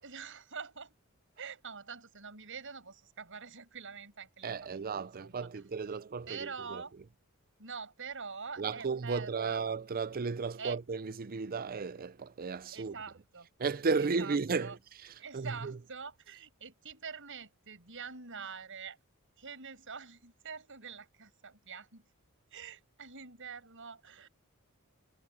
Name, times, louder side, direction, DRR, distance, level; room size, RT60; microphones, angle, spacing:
voice 1, 0.0-0.9 1.4-5.6 5.9-6.0 6.3-6.9 7.6-9.6 10.6-10.8 12.7-13.5 14.0-14.8 15.2-19.0 19.4-22.1 22.5-24.3, right 5 dB, 60° right, 7.9 m, -45 dB
voice 2, 4.4-6.8 8.6-12.9 13.6-15.8, right 4 dB, 45° right, 0.5 m, -34 dB
head